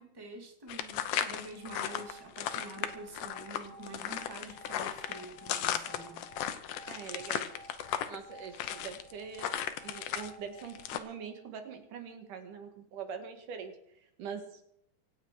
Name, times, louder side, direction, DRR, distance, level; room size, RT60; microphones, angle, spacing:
voice 1, 0.0-6.3, right 2 dB, 10° right, 1 dB, 2.3 m, -47 dB
sound 1, 0.7-10.3 10.6-11.0, left 10 dB, 75° left, 2.5 m, -36 dB
sound 2, 1.5-11.6, right 1 dB, 30° left, 2.1 m, -54 dB
voice 2, 6.9-7.5 8.1-9.6 9.8-14.6, right 6 dB, 75° right, 6 dB, 3.3 m, -43 dB
26.0 x 8.9 x 4.8 m, 0.73 s
omnidirectional pair, 3.7 m